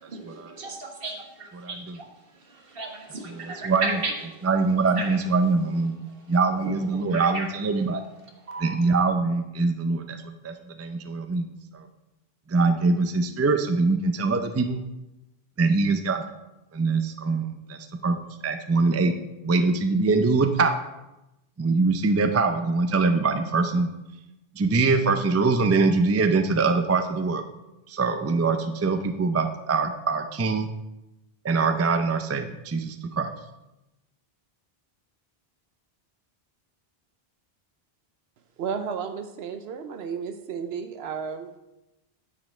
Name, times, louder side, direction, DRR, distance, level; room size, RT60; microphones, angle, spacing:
voice 1, 0.6-1.1 1.4-1.8 2.7-4.1 5.0-5.1 6.6-7.5 8.5-8.7, right 3 dB, 65° right, 2 dB, 1.5 m, -33 dB
voice 2, 1.5-2.0 3.2-4.0 4.4-5.9 6.3-8.0 8.6-11.5 11.7-11.9 12.5-14.8 15.6-16.2 16.7-18.2 18.4-19.1 19.4-20.8 21.6-23.9 24.6-27.4 27.9-30.7 31.4-33.3, right 3 dB, 25° right, 8 dB, 0.3 m, -23 dB
voice 3, 38.6-41.5, right 6 dB, 85° right, 7 dB, 0.9 m, -33 dB
9.4 x 5.2 x 4.3 m, 0.94 s
omnidirectional pair, 1.0 m